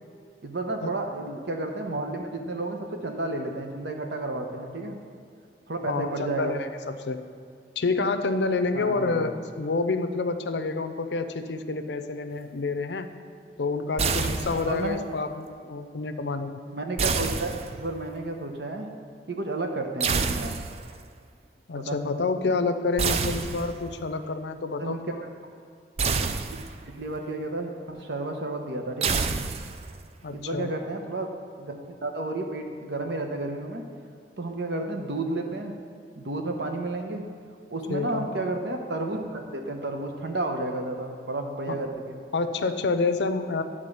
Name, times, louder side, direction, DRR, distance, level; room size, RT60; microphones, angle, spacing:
voice 1, 0.4-5.0 5.7-6.6 8.7-9.2 14.7-15.0 16.7-18.9 19.3-20.6 21.7-22.0 24.8-25.0 26.9-29.2 30.3-31.3 31.6-33.8 34.4-35.7 36.2-37.2 37.7-42.2, right 2 dB, 75° right, 4 dB, 0.9 m, -31 dB
voice 2, 5.9-7.2 7.8-13.1 13.6-16.6 21.7-25.0 30.2-30.7 37.9-38.3 41.7-41.8 42.3-43.6, left 3 dB, 75° left, 9 dB, 0.5 m, -28 dB
sound 1, 14.0-14.9 17.0-18.1 20.0-21.0 23.0-24.0 26.0-27.0 29.0-30.0, right 5 dB, 35° right, 0.3 m, -28 dB
10.5 x 3.7 x 6.5 m, 2.4 s
head